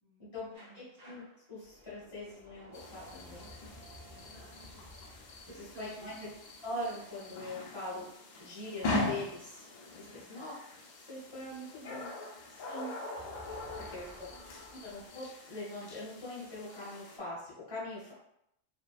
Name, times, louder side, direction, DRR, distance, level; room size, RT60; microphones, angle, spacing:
voice 1, 0.0-0.9 4.0-4.9 5.5-6.1 10.0-10.5 13.7-14.6, right 3 dB, 75° right, -5 dB, 1.3 m, -57 dB
sound 1, 0.5-7.3 12.8-15.1, equal, 45° right, 0.7 m, -55 dB
voice 2, 0.7-1.2 1.5-3.5 5.5-6.3 6.6-8.1 8.4-9.6 9.9-10.5 11.0-12.1 12.5-13.0 13.9-14.3 14.7-18.1, left 1 dB, 30° left, -7 dB, 0.8 m, -42 dB
sound 2, 2.7-17.2, left 2 dB, 55° left, 0.6 m, -42 dB
2.6 x 2.2 x 2.3 m, 0.80 s
omnidirectional pair, 1.2 m